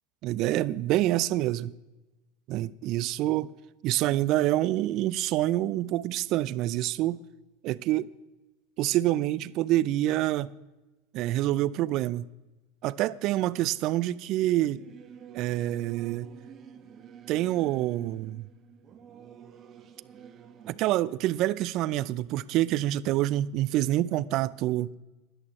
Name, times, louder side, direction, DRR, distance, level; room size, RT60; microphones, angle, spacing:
voice 1, 0.2-1.7 2.5-3.5 3.8-7.2 7.6-8.1 8.8-10.5 11.1-12.3 12.8-14.8 15.3-16.3 17.3-18.5 20.7-24.9, right 15 dB, 55° right, 0.5 m, -27 dB
Singing / Musical instrument, 14.6-20.8, right 8 dB, 35° right, 1.3 m, -49 dB
13.0 x 11.0 x 4.3 m
hypercardioid pair, 100°, 0 cm